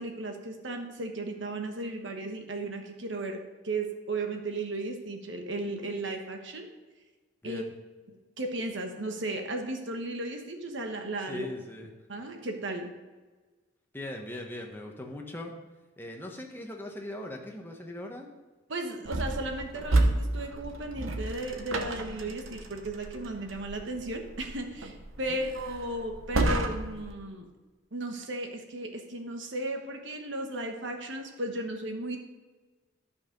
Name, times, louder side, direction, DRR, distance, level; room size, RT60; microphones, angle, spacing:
voice 1, 0.0-6.7 7.4-7.6 8.4-11.5 12.1-12.9 18.7-27.5 27.9-32.2, right 2 dB, 65° right, 4 dB, 1.2 m, -35 dB
voice 2, 11.3-11.9 13.9-15.5 16.0-18.3 25.3-25.4, left 1 dB, 10° left, 1 dB, 1.1 m, -40 dB
sound 1, 19.0-27.1, right 2 dB, 85° right, 1.0 m, -31 dB
12.0 x 5.7 x 5.1 m, 1.3 s
head